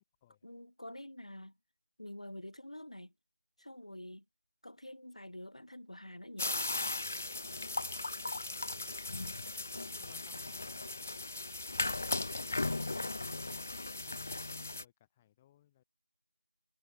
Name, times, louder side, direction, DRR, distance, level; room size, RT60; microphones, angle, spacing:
voice 1, 0.4-1.5 2.0-3.1 3.6-4.2 4.6-6.5, left 1 dB, 90° left, 2.3 m, -47 dB
sound 1, 6.4-14.8, left 2 dB, 20° left, 1.1 m, -37 dB
voice 2, 8.7-9.5 10.0-11.2 13.1-15.8, left 13 dB, 5° left, 1.8 m, -65 dB
figure-of-eight pair, 180°, 3 cm